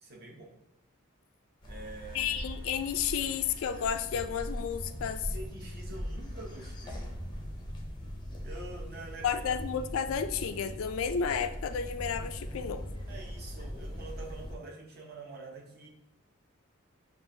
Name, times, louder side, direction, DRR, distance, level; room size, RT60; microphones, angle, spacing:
voice 1, 0.0-0.6 1.6-2.4 5.3-7.3 8.4-9.4 13.1-15.9, right 2 dB, 50° right, -1 dB, 0.8 m, -46 dB
sound 1, 1.6-14.6, equal, 20° left, 0.5 m, -41 dB
sound 2, 1.7-7.6, right 1 dB, 90° right, 1.7 m, -56 dB
voice 2, 2.1-5.3 9.2-12.9, left 7 dB, 80° left, 10 dB, 0.3 m, -32 dB
Bass guitar, 4.7-14.3, equal, 30° right, 1.7 m, -47 dB
7.1 x 2.4 x 2.7 m, 0.81 s
head